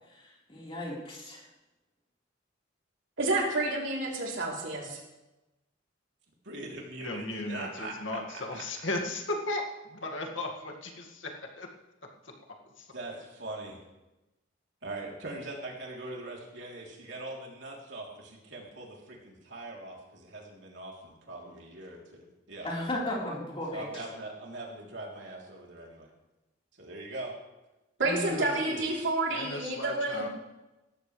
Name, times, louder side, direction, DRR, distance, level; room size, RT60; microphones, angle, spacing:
voice 1, 0.1-1.4 22.6-23.8 28.0-28.3, left 1 dB, 30° left, -5 dB, 4.3 m, -35 dB
voice 2, 3.2-5.0 28.0-30.3, right 2 dB, 85° right, -2 dB, 3.5 m, -29 dB
voice 3, 6.4-7.9 8.3-8.6 12.9-13.8 14.8-22.7 23.7-26.1 26.8-27.3 28.2-28.8, right 2 dB, 65° right, -2 dB, 3.4 m, -41 dB
voice 4, 7.0-11.7 12.2-12.3 12.6-12.9 29.3-30.3, left 2 dB, 80° left, 1 dB, 2.1 m, -36 dB
18.5 x 14.0 x 3.3 m, 1.0 s
head